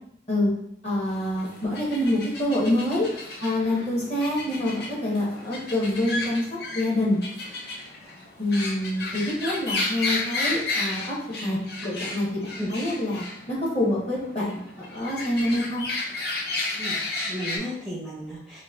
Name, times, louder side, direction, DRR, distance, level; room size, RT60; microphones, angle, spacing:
voice 1, 0.8-3.1 3.4-7.2 8.4-11.1 11.4-14.6 14.9-15.8, left 1 dB, 35° left, -5 dB, 1.2 m, -26 dB
sound 1, 1.1-17.6, left 2 dB, 60° left, 0.7 m, -33 dB
voice 2, 16.7-18.6, equal, ahead, -8 dB, 0.7 m, -34 dB
3.1 x 2.8 x 3.6 m, 0.73 s
head